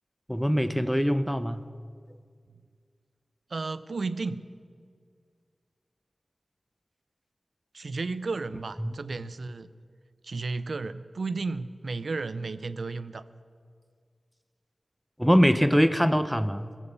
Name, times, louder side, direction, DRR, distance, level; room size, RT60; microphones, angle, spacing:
voice 1, 0.3-1.6 8.8-8.9 15.2-16.7, equal, ahead, 13 dB, 0.6 m, -23 dB
voice 2, 3.5-4.4 7.7-9.7 10.2-13.2, right 3 dB, 80° right, 14 dB, 0.4 m, -33 dB
17.0 x 7.3 x 6.7 m, 2.1 s
cardioid pair, 50°, 0 cm